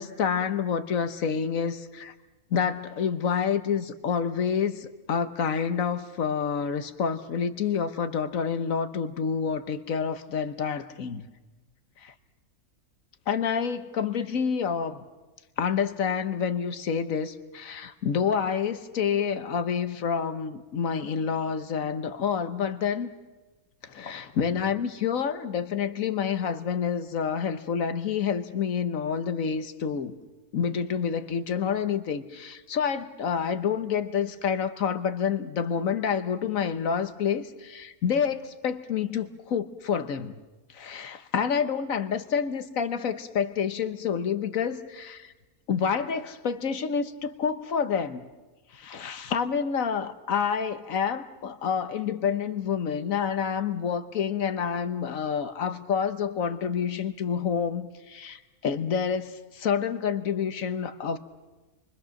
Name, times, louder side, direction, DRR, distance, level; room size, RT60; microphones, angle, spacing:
voice 1, 0.0-2.1 2.5-11.3 12.0-12.1 13.3-15.0 15.6-23.1 23.8-30.1 30.5-40.4 40.7-45.3 45.7-48.3 48.7-61.2, left 7 dB, 65° left, 11 dB, 1.4 m, -28 dB
29.5 x 23.5 x 6.4 m, 1.2 s
omnidirectional pair, 1.5 m